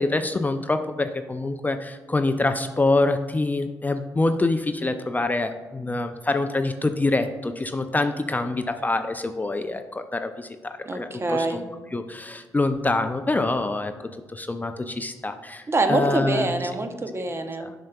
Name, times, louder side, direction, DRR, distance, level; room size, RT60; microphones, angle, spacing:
voice 1, 0.0-11.6 11.9-13.9 14.3-16.5 17.6-17.7, left 2 dB, 20° left, 8 dB, 0.4 m, -25 dB
voice 2, 10.9-11.6 15.7-17.7, right 2 dB, 30° right, 7 dB, 0.7 m, -25 dB
7.3 x 5.6 x 2.3 m, 1.3 s
hypercardioid pair, 50°, 8 cm